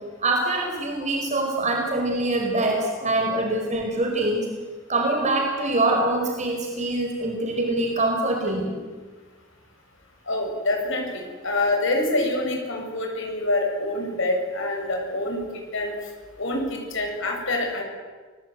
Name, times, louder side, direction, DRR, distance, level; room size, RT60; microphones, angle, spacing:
voice 1, 0.2-4.5 4.9-8.8, right 2 dB, 35° right, 1 dB, 5.0 m, -24 dB
voice 2, 10.3-15.4 15.7-15.9 16.4-17.8, left 2 dB, 65° left, 2 dB, 7.8 m, -26 dB
29.5 x 20.5 x 9.5 m, 1.4 s
head